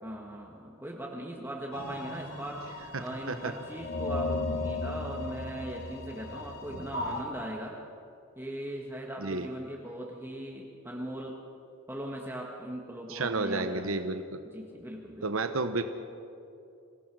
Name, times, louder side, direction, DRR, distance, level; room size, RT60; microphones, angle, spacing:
voice 1, 0.0-2.6 3.0-7.8 8.4-11.4 11.9-14.0 14.5-15.3, right 1 dB, 10° right, -2 dB, 1.7 m, -39 dB
sound 1, 1.7-7.2, left 2 dB, 75° left, 4.3 m, -36 dB
voice 2, 13.1-14.2 15.2-15.8, right 3 dB, 80° right, 8 dB, 1.1 m, -31 dB
26.5 x 17.5 x 6.2 m, 2.6 s
head